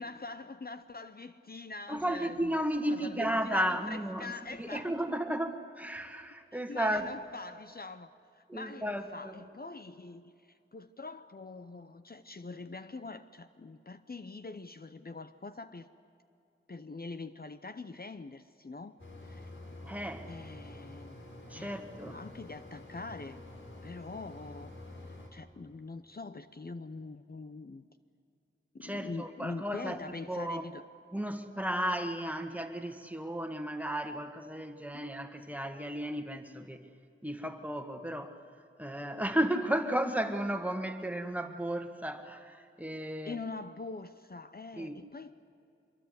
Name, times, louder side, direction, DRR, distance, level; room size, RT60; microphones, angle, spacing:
voice 1, 0.0-2.5 2.9-4.9 6.5-15.9 16.7-19.5 20.3-21.2 21.5-23.4 23.8-24.7 25.1-27.9 28.7-30.8 34.9-35.1 43.2-45.3, left 3 dB, 45° left, 0.7 m, -44 dB
voice 2, 1.9-4.3 4.6-7.1 8.5-9.3 19.8-20.3 21.5-22.2 28.8-30.0 30.3-30.6 31.1-36.9 37.2-38.4 38.8-43.4 44.8-45.0, right 1 dB, 5° right, 1.8 m, -34 dB
Mechanisms, 19.0-25.3, left 1 dB, 65° left, 4.3 m, -48 dB
25.0 x 23.0 x 8.1 m
wide cardioid pair, 60°, 21 cm